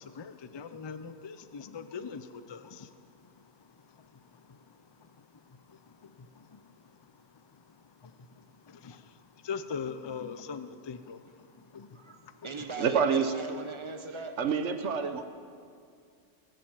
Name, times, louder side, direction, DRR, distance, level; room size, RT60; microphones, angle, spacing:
voice 1, 0.0-12.5, left 5 dB, 35° left, 10 dB, 0.5 m, -44 dB
voice 2, 11.9-14.4, right 4 dB, 25° right, 6 dB, 1.0 m, -40 dB
voice 3, 12.8-13.3 14.4-15.3, right 6 dB, 75° right, 8 dB, 1.3 m, -27 dB
19.0 x 7.7 x 8.9 m, 2.3 s
omnidirectional pair, 1.2 m